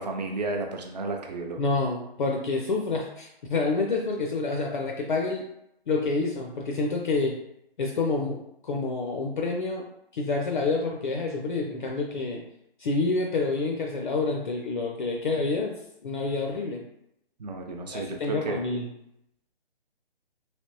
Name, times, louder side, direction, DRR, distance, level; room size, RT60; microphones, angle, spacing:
voice 1, 0.0-1.6 17.4-18.6, right 3 dB, 40° right, 3 dB, 0.5 m, -32 dB
voice 2, 1.6-5.4 5.9-7.4 7.8-9.9 10.1-12.4 12.8-15.7 16.0-16.8 17.9-18.9, left 3 dB, 50° left, 0 dB, 0.5 m, -28 dB
3.3 x 2.8 x 2.7 m, 0.79 s
figure-of-eight pair, 150°, 31 cm